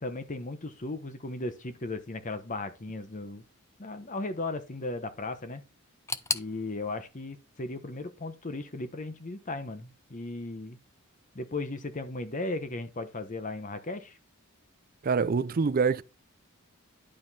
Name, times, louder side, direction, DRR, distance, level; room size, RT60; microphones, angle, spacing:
voice 1, 0.0-3.4 3.8-5.6 6.3-10.8 11.3-14.2, left 2 dB, 35° left, 0.9 m, -36 dB
sound 1, 6.1-9.0 9.2-10.0 10.3-10.4 11.3-11.4, left 4 dB, 15° left, 0.5 m, -39 dB
voice 2, 15.0-16.0, right 5 dB, 40° right, 0.4 m, -25 dB
11.0 x 5.2 x 4.1 m
head